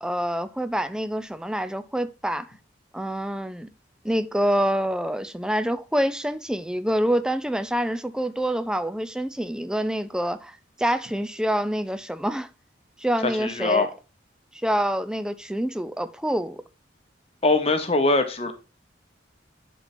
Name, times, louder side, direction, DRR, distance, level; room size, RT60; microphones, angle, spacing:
voice 1, 0.0-2.5 2.9-3.7 4.0-12.5 13.0-13.9 14.5-16.6, equal, 5° right, 0.5 m, -26 dB
voice 2, 13.2-13.9 17.4-18.5, left 3 dB, 30° left, 0.9 m, -22 dB
11.0 x 4.5 x 2.6 m
head